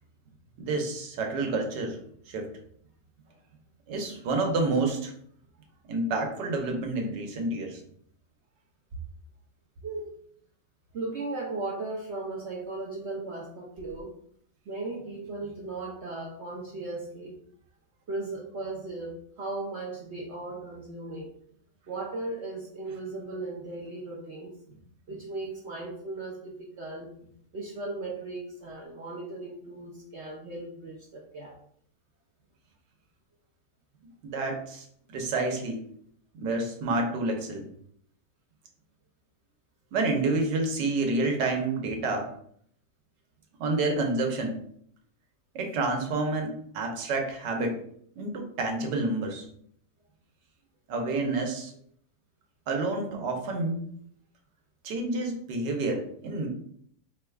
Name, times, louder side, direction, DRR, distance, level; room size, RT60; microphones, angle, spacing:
voice 1, 0.6-2.0 2.3-2.5 3.9-5.1 5.9-7.8 34.2-34.8 35.1-35.8 36.3-37.6 39.9-42.3 43.6-44.6 45.5-47.8 48.2-49.4 50.9-51.7 52.7-53.9 54.8-56.5, right 2 dB, 80° right, 2 dB, 1.4 m, -29 dB
voice 2, 9.8-10.1 10.9-14.1 14.7-17.4 18.1-21.3 21.9-24.8 25.1-31.6, right 2 dB, 65° right, -2 dB, 0.7 m, -37 dB
4.8 x 2.3 x 3.4 m, 0.64 s
omnidirectional pair, 1.9 m